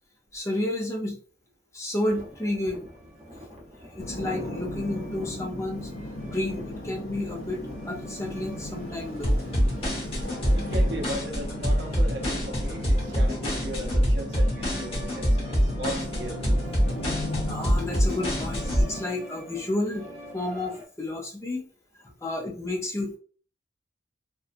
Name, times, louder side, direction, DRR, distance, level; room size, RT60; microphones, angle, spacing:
voice 1, 0.3-1.2 1.7-2.8 3.8-5.9 6.3-9.4 17.5-20.1 20.3-21.6 22.2-23.2, left 1 dB, 15° left, 0.5 m, -31 dB
sound 1, 2.0-20.8, equal, 35° right, 0.9 m, -45 dB
sound 2, 4.0-19.0, left 1 dB, 75° left, 0.6 m, -36 dB
sound 3, 9.2-18.8, equal, 35° left, 1.0 m, -25 dB
voice 2, 10.5-16.4, equal, 75° right, 0.7 m, -37 dB
2.8 x 2.2 x 2.4 m
head